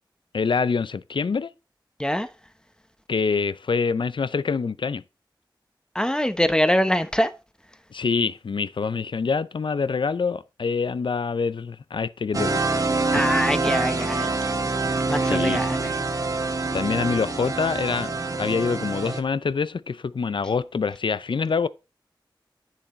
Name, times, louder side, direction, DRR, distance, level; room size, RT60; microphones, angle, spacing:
voice 1, 0.3-1.5 3.1-5.0 7.9-13.2 15.2-15.6 16.7-18.1 18.4-21.7, left 5 dB, 75° left, 0.5 m, -25 dB
voice 2, 2.0-2.3 5.9-7.3 13.1-14.3 15.1-16.0, equal, 10° left, 1.0 m, -23 dB
sound 1, 12.3-19.2, right 3 dB, 45° right, 1.2 m, -25 dB
10.5 x 7.1 x 4.3 m
wide cardioid pair, 75°, 8 cm